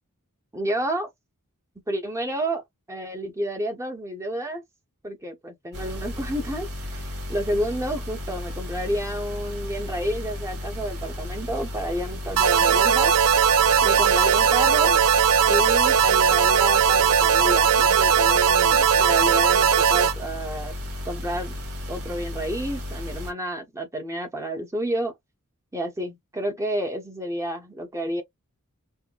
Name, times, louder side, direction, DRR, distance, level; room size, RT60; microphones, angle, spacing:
voice 1, 0.5-1.1 1.9-2.6 2.9-4.6 5.0-13.2 13.8-15.0 15.5-20.7 21.1-21.5 21.9-25.1 25.7-28.2, right 1 dB, 15° right, 0.9 m, -30 dB
sound 1, 5.7-23.3, left 1 dB, 50° right, 3.1 m, -34 dB
sound 2, 12.4-20.1, right 7 dB, 90° right, 0.4 m, -18 dB
5.6 x 2.1 x 2.3 m
head